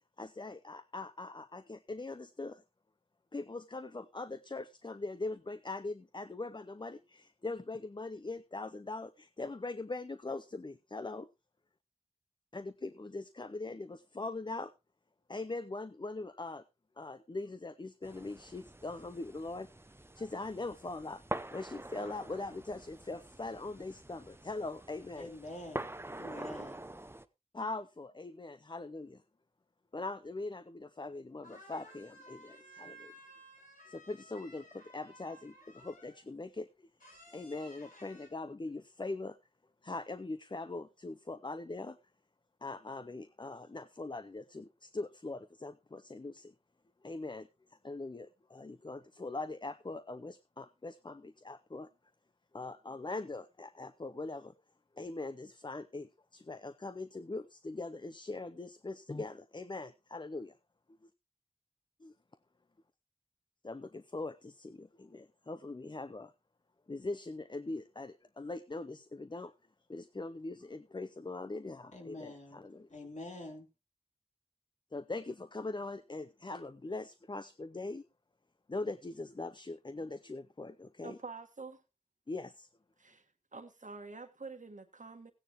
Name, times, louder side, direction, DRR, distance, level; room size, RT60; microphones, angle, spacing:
voice 1, 0.2-2.6 3.3-11.3 12.5-14.7 15.3-16.6 17.0-19.7 20.2-21.2 21.5-25.3 27.5-29.2 29.9-33.1 33.9-36.9 37.3-39.4 39.8-42.0 42.6-46.5 47.0-47.5 47.8-51.9 52.5-54.5 55.0-60.5 62.0-62.1 63.6-66.3 66.9-69.5 69.9-72.9 74.9-78.0 78.7-81.2 82.3-82.7, left 2 dB, 35° left, 0.6 m, -41 dB
sound 1, 18.0-27.3, right 1 dB, 20° right, 0.7 m, -46 dB
voice 2, 25.2-26.9 71.9-72.6 72.9-73.6, left 2 dB, 60° left, 3.4 m, -46 dB
sound 2, 31.1-31.2 31.4-36.3 37.0-38.3, equal, 85° left, 4.4 m, -56 dB
voice 3, 81.0-81.8 83.0-83.2 83.5-85.3, right 4 dB, 70° right, 1.6 m, -47 dB
16.0 x 9.8 x 3.0 m
wide cardioid pair, 60°, 13 cm